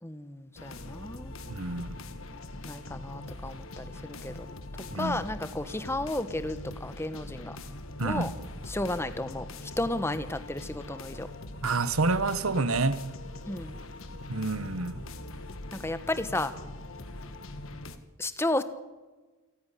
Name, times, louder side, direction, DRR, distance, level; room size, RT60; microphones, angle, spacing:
voice 1, 0.0-1.3 2.6-4.5 5.0-7.6 8.0-8.3 8.7-11.3 13.5-13.8 15.8-16.5 18.2-18.6, left 1 dB, 10° left, 1.0 m, -33 dB
sound 1, 0.6-18.0, left 2 dB, 70° left, 1.5 m, -42 dB
voice 2, 1.5-2.0 4.9-5.2 8.0-8.3 11.6-13.1 14.3-15.0, right 3 dB, 75° right, 1.1 m, -28 dB
27.5 x 9.6 x 10.0 m
head